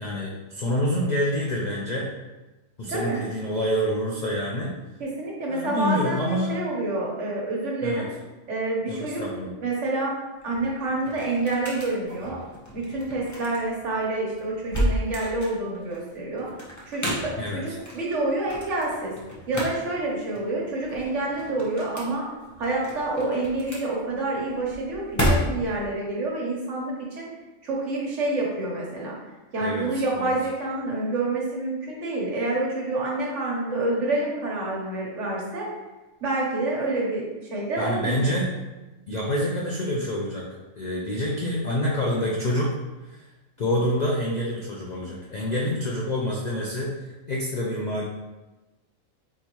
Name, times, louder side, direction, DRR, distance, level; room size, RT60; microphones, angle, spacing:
voice 1, 0.0-2.1 2.8-4.7 5.5-6.5 7.8-8.1 8.9-9.5 17.4-17.7 29.6-30.3 37.8-38.5 39.1-40.4 40.8-42.8 43.0-43.2 43.6-48.0, equal, 65° left, -2 dB, 0.4 m, -27 dB
voice 2, 2.9-3.2 5.0-8.1 8.5-9.2 9.6-10.1 10.4-12.4 12.7-16.5 16.9-17.6 17.9-19.1 19.5-22.2 22.6-27.3 27.6-29.1 29.5-35.7 36.2-38.3, right 2 dB, 60° right, -3 dB, 1.3 m, -28 dB
sound 1, 10.3-25.9, equal, 15° left, 0.7 m, -32 dB
3.9 x 3.8 x 3.0 m, 1.1 s
omnidirectional pair, 1.4 m